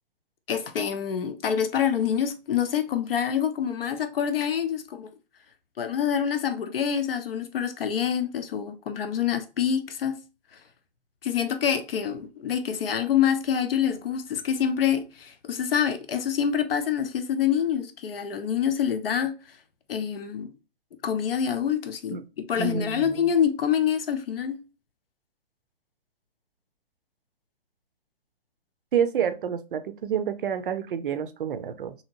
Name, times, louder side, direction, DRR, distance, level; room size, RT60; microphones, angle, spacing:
voice 1, 0.5-5.1 5.8-10.2 11.2-19.3 19.9-20.5 21.0-22.2 22.5-24.6, left 8 dB, 70° left, 0.7 m, -26 dB
voice 2, 22.6-23.3 28.9-31.9, right 8 dB, 60° right, 0.5 m, -28 dB
2.8 x 2.8 x 2.6 m
hypercardioid pair, 155°, 30 cm